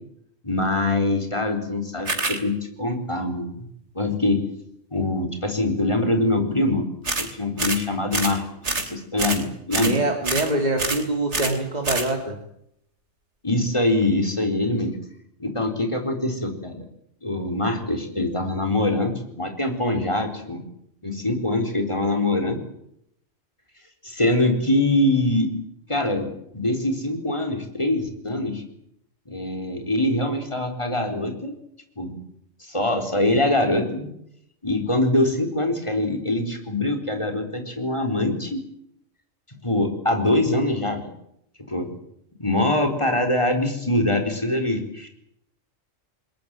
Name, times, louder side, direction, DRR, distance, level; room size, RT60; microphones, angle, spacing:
voice 1, 0.4-3.6 3.9-4.4 4.9-6.9 7.2-8.4 8.8-9.9 13.4-15.0 15.4-16.8 17.2-20.6 21.0-22.6 24.0-25.5 25.9-28.6 29.3-31.5 32.0-32.1 32.6-34.1 34.6-38.6 39.6-41.1 41.7-41.9 42.4-45.1, left 1 dB, 25° left, 4 dB, 4.3 m, -23 dB
sound 1, 2.1-2.4 7.0-7.3 7.6-7.8 8.1-8.4 8.6-8.9 9.2-9.4 9.7-10.0 10.2-10.5 10.8-11.0 11.3-11.6 11.8-12.1, right 3 dB, 65° right, 3.3 m, -26 dB
voice 2, 9.8-12.4, right 2 dB, 35° right, 2 dB, 3.3 m, -24 dB
21.5 x 21.0 x 9.1 m, 0.75 s
omnidirectional pair, 1.3 m